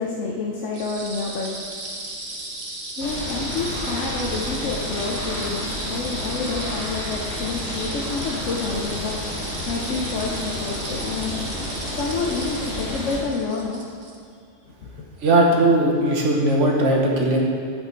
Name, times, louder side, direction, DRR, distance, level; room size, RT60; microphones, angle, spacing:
voice 1, 0.0-1.5 3.0-9.2 9.7-11.3 11.9-13.8 14.7-14.9, left 4 dB, 85° left, -2 dB, 1.1 m, -28 dB
sound 1, 0.7-14.2, right 2 dB, 50° right, 1.3 m, -35 dB
sound 2, 3.0-13.2, left 1 dB, 65° left, 1.9 m, -31 dB
voice 2, 15.2-17.4, right 1 dB, 80° right, -1 dB, 1.5 m, -18 dB
11.0 x 5.0 x 4.5 m, 2.4 s
omnidirectional pair, 1.2 m